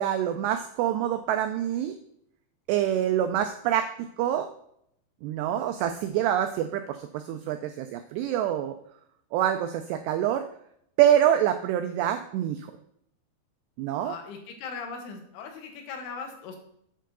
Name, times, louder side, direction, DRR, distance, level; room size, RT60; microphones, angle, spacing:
voice 1, 0.0-2.0 2.7-4.5 5.2-8.8 9.3-10.4 11.0-12.7 13.8-14.2, right 11 dB, 90° right, 8 dB, 2.4 m, -26 dB
voice 2, 14.0-16.6, left 5 dB, 85° left, 3 dB, 3.7 m, -39 dB
8.0 x 4.5 x 6.1 m, 0.72 s
omnidirectional pair, 5.4 m